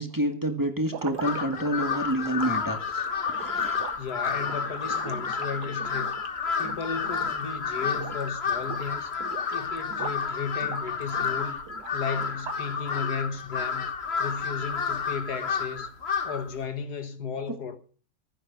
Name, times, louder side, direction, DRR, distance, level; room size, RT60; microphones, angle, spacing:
voice 1, 0.0-3.9, right 1 dB, 10° right, 1.6 m, -29 dB
sound 1, 0.8-7.5 7.8-8.3 8.6-10.3 10.6-12.8, right 8 dB, 85° right, 1.6 m, -42 dB
Crow, 1.2-16.5, left 6 dB, 45° left, 1.5 m, -30 dB
voice 2, 4.0-6.2 6.6-9.2 9.5-11.6 11.9-13.9 14.2-15.9 16.2-17.8, left 5 dB, 75° left, 2.0 m, -34 dB
14.5 x 10.0 x 6.8 m
omnidirectional pair, 1.7 m